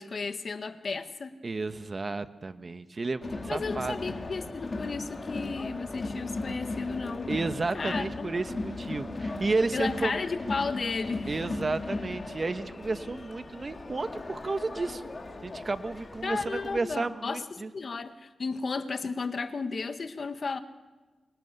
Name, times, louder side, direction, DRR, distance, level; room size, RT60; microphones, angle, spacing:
voice 1, 0.0-1.3 3.5-7.3 7.7-8.3 9.7-11.4 16.2-17.4 17.7-20.6, left 4 dB, 55° left, 9 dB, 1.6 m, -33 dB
voice 2, 1.4-3.9 7.3-10.1 11.3-15.0 15.4-17.7, right 3 dB, 40° right, 10 dB, 1.4 m, -32 dB
Crowd, 3.2-16.8, left 2 dB, 40° left, 3.0 m, -37 dB
29.0 x 24.5 x 6.9 m, 1.3 s
cardioid pair, 65°, 0 cm